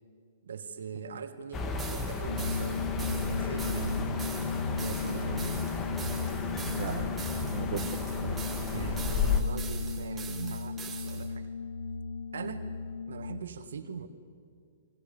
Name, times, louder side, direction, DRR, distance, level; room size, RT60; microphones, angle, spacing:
voice 1, 0.4-2.9 3.4-4.0 4.8-5.6 8.6-11.5 12.3-12.7 13.1-14.1, right 6 dB, 75° right, 8 dB, 2.1 m, -41 dB
sound 1, 1.5-9.4, left 5 dB, 20° left, 2.1 m, -34 dB
sound 2, 1.8-11.3, right 7 dB, 15° right, 2.4 m, -44 dB
sound 3, 2.3-13.4, left 4 dB, 85° left, 2.5 m, -35 dB
voice 2, 6.7-8.4, right 9 dB, 55° right, 3 dB, 1.7 m, -39 dB
29.5 x 24.5 x 7.1 m, 2.1 s
hypercardioid pair, 135°, 0 cm